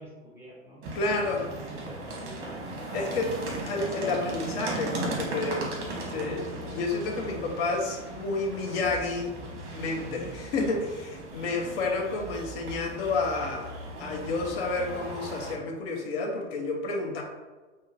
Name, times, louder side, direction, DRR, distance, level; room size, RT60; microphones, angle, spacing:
voice 1, 0.0-0.8 1.1-2.6 3.0-3.6 10.0-10.3, right 1 dB, 5° right, -5 dB, 0.7 m, -47 dB
sound 1, 0.8-15.5, right 2 dB, 35° right, 1.0 m, -37 dB
voice 2, 0.9-1.4 2.9-5.7 6.1-9.3 9.7-13.7 14.0-17.2, left 3 dB, 50° left, 1 dB, 0.7 m, -30 dB
5.3 x 2.1 x 2.5 m, 1.3 s
hypercardioid pair, 110°, 38 cm